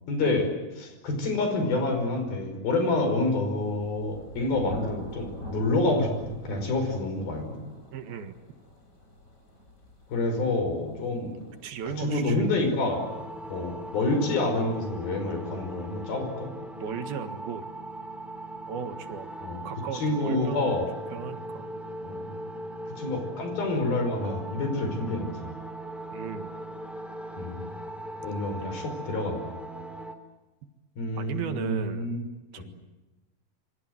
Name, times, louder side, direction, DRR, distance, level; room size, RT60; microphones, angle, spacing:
voice 1, 0.1-7.6 10.1-11.3 12.0-13.0 13.5-16.5 19.4-19.6 19.9-20.8 22.0-22.2 23.0-25.5 27.4-27.7 28.2-29.6 31.0-32.2 32.6-32.7, left 2 dB, 75° left, 5 dB, 7.2 m, -28 dB
Thunder, 3.4-14.9, left 1 dB, 20° left, 5.0 m, -44 dB
voice 2, 7.9-8.4 11.6-12.5 16.8-17.6 18.7-19.3 19.7-20.7 21.1-21.7 26.1-26.5 31.2-32.1 32.5-32.6, right 7 dB, 85° right, 8 dB, 3.6 m, -36 dB
sound 1, 12.9-30.1, right 1 dB, ahead, 2.3 m, -39 dB
26.5 x 25.0 x 7.9 m, 1.1 s
omnidirectional pair, 4.3 m